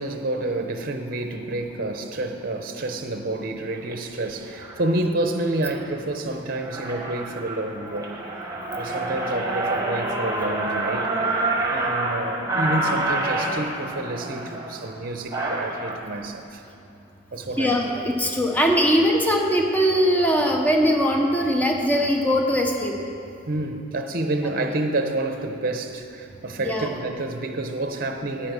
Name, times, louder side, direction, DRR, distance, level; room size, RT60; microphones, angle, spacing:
voice 1, 0.0-8.1 8.7-11.1 11.7-16.6 17.3-17.8 23.5-28.5, right 2 dB, 45° right, 6 dB, 0.7 m, -28 dB
sound 1, 3.8-3.9 4.6-4.8 5.3-5.8 6.2-6.3 6.5-16.0, right 2 dB, 20° right, 1.3 m, -27 dB
voice 2, 17.6-22.9 26.6-26.9, equal, 10° left, 1 dB, 0.9 m, -21 dB
10.5 x 8.7 x 6.1 m, 2.7 s
head